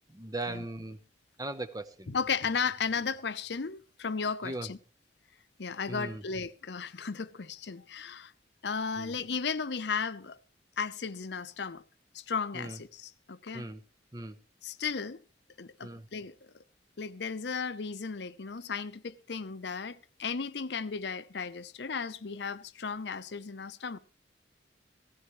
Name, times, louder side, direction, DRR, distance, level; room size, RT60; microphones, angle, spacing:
voice 1, 0.1-1.0 1.4-2.1 4.4-4.7 5.9-6.2 9.0-9.1 12.5-12.8 13.5-13.8 14.1-14.4 15.8-16.1, right 2 dB, 20° right, 0.7 m, -38 dB
voice 2, 2.1-4.8 5.6-8.3 8.6-10.4 10.8-11.8 12.1-13.7 14.6-15.2 15.6-16.3 17.0-24.0, left 5 dB, 65° left, 0.7 m, -35 dB
16.5 x 14.5 x 3.1 m
head